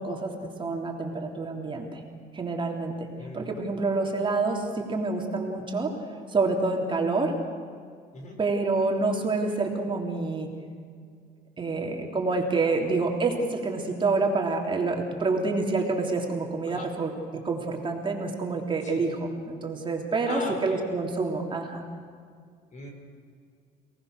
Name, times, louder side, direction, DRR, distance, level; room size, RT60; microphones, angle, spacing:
voice 1, 0.0-2.0 2.3-3.1 3.3-5.9 6.3-7.3 8.4-10.5 11.6-17.1 17.4-19.2 19.5-21.8, right 3 dB, 30° right, 1 dB, 3.2 m, -27 dB
voice 2, 3.2-3.5 8.1-8.4 16.7-16.9 18.8-19.1 20.3-20.8 22.7-22.9, left 3 dB, 45° left, 2 dB, 6.3 m, -39 dB
29.0 x 18.5 x 6.6 m, 2.2 s
cardioid pair, 110°, 17 cm